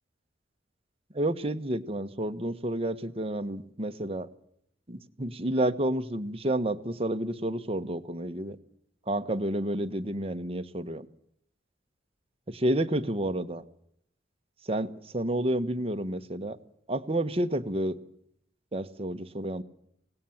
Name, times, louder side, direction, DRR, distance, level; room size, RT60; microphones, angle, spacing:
voice 1, 1.1-4.3 4.9-8.6 9.1-11.0 12.5-13.6 14.6-16.6 16.9-18.0 18.7-19.6, right 1 dB, 35° right, 8 dB, 1.3 m, -30 dB
25.5 x 18.5 x 7.3 m, 0.73 s
head